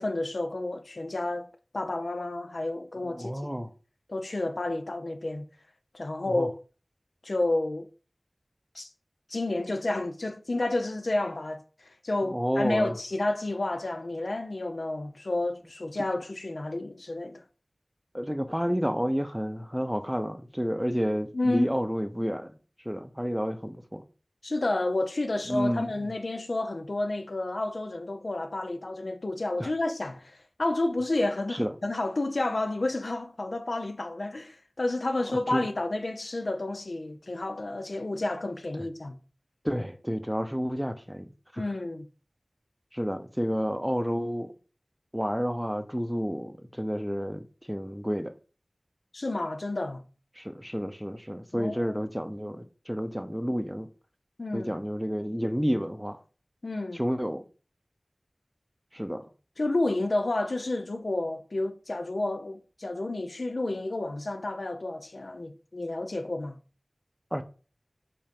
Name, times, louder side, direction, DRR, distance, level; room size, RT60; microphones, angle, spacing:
voice 1, 0.0-1.5 1.7-3.3 4.1-5.4 5.9-6.5 7.2-7.9 8.7-8.9 9.3-17.4 21.3-21.7 24.4-39.2 41.6-42.0 49.1-50.0 51.5-51.8 54.4-54.7 56.6-57.0 59.6-66.6, left 2 dB, 80° left, 0.7 m, -30 dB
voice 2, 3.0-3.7 6.3-6.5 12.3-13.0 16.0-16.1 18.1-24.1 25.5-25.9 29.6-29.7 31.5-31.7 35.3-35.7 38.1-38.2 38.8-38.9 39.6-41.6 42.9-44.5 45.1-48.3 50.4-53.9 54.5-56.2 56.9-57.4 58.9-59.3 67.3-67.4, equal, 5° right, 0.7 m, -30 dB
5.6 x 3.9 x 5.3 m
wide cardioid pair, 50°, 0 cm